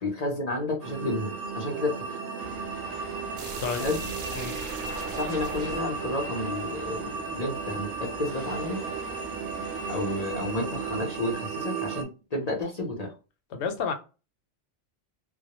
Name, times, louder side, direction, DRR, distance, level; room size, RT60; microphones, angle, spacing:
voice 1, 0.0-2.2 3.8-4.0 4.9-8.8 9.9-13.1, left 2 dB, 45° left, 0.5 m, -31 dB
sound 1, 0.8-12.0, right 5 dB, 85° right, 0.9 m, -35 dB
sound 2, 2.4-11.0, right 1 dB, 15° right, 0.5 m, -45 dB
sound 3, 3.4-8.1, right 4 dB, 60° right, 0.6 m, -40 dB
voice 2, 13.5-13.9, left 5 dB, 70° left, 0.8 m, -30 dB
2.2 x 2.0 x 2.8 m
omnidirectional pair, 1.3 m